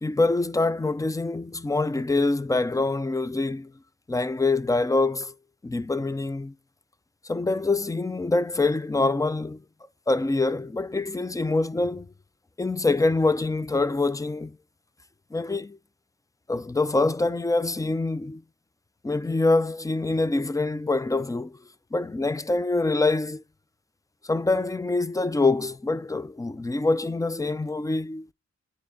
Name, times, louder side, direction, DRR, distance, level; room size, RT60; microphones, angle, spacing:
voice 1, 0.0-3.7 4.1-5.3 5.6-6.5 7.2-9.6 10.1-12.1 12.6-14.6 15.3-15.8 16.5-18.4 19.0-21.6 21.9-23.4 24.2-28.3, left 3 dB, 10° left, 0.3 m, -25 dB
9.7 x 4.2 x 3.7 m
wide cardioid pair, 105°, 29 cm